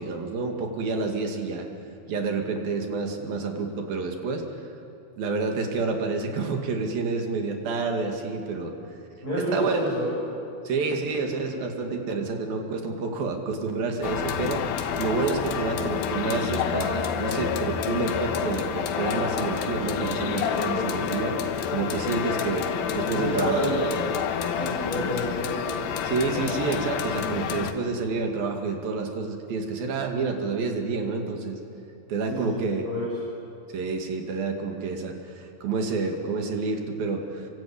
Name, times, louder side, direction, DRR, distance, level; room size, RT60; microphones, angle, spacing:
voice 1, 0.0-1.7 2.1-4.4 5.2-8.7 9.5-10.0 10.7-14.6 15.0-21.4 21.7-22.7 22.9-23.7 26.0-31.6 32.1-32.8 33.7-37.5, right 4 dB, 75° right, 3 dB, 4.0 m, -29 dB
voice 2, 9.2-10.1 23.1-23.9 24.6-25.7 32.3-33.0, equal, 25° left, -8 dB, 8.1 m, -28 dB
sound 1, 14.0-27.7, left 7 dB, 80° left, 3.1 m, -28 dB
27.0 x 24.0 x 8.9 m, 2.8 s
omnidirectional pair, 4.2 m